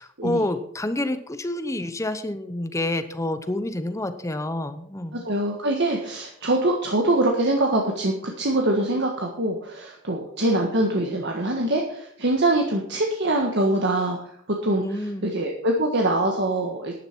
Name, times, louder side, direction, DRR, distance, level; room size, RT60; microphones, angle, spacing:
voice 1, 0.0-5.2 14.8-15.3, left 1 dB, 15° left, 11 dB, 0.9 m, -28 dB
voice 2, 5.2-14.2 14.6-17.0, right 1 dB, 60° right, 1 dB, 1.5 m, -24 dB
11.5 x 10.5 x 4.6 m, 0.68 s
head